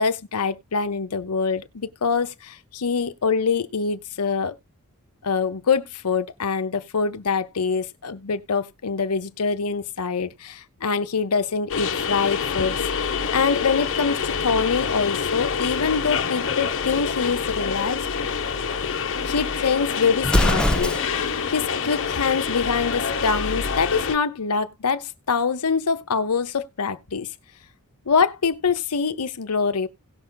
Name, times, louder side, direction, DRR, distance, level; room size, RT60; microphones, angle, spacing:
voice 1, 0.0-4.6 5.2-18.1 19.2-20.9 21.5-27.3 28.1-29.9, left 5 dB, 90° left, 0.9 m, -24 dB
sound 1, 11.7-24.2, left 6 dB, 60° left, 0.9 m, -26 dB
Explosion, 20.2-21.4, left 1 dB, 5° left, 0.6 m, -22 dB
17.5 x 5.9 x 2.2 m
head